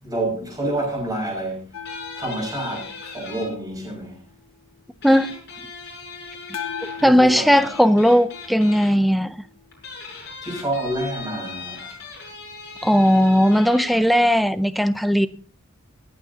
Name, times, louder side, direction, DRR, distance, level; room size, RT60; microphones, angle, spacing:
voice 1, 0.0-1.6 2.2-4.2 7.0-7.7 10.4-12.0, right 1 dB, 20° right, 6.1 m, -28 dB
sound 1, 1.7-4.6 6.5-9.8 12.6-12.7, left 7 dB, 70° left, 1.5 m, -39 dB
sound 2, 1.8-3.4 5.0-7.1 7.5-8.9 9.7-14.0, left 4 dB, 55° left, 6.5 m, -39 dB
voice 2, 7.0-9.4 12.8-15.3, equal, ahead, 0.5 m, -17 dB
26.0 x 8.8 x 2.8 m
head